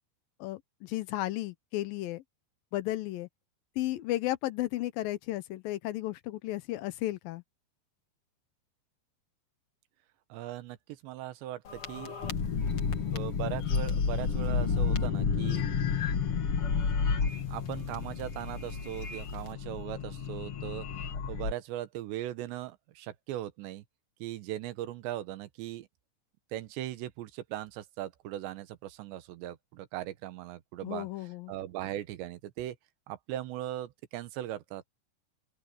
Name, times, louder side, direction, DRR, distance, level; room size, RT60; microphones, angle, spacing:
voice 1, 0.4-2.2 2.7-3.3 3.8-7.4 30.8-31.5, left 16 dB, 75° left, 2.2 m, -34 dB
voice 2, 10.3-12.1 13.1-15.7 17.5-20.9 21.3-23.8 24.2-25.9 26.5-31.1 31.5-32.8 33.1-34.8, right 13 dB, 90° right, 3.4 m, -39 dB
sound 1, 11.7-21.5, left 6 dB, 45° left, 2.2 m, -31 dB
open air
omnidirectional pair, 5.0 m